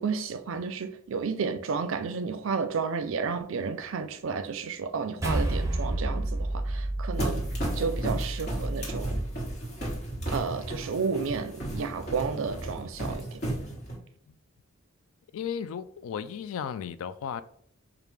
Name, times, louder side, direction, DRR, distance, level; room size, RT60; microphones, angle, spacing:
voice 1, 0.0-7.4 7.7-9.2 10.3-13.4, right 5 dB, 65° right, 0.4 m, -32 dB
sound 1, 5.2-9.8, right 1 dB, 15° right, 0.6 m, -31 dB
sound 2, 7.2-14.0, right 1 dB, 50° left, 1.5 m, -34 dB
voice 2, 15.3-17.4, left 7 dB, 75° left, 0.3 m, -35 dB
4.8 x 2.3 x 3.4 m
head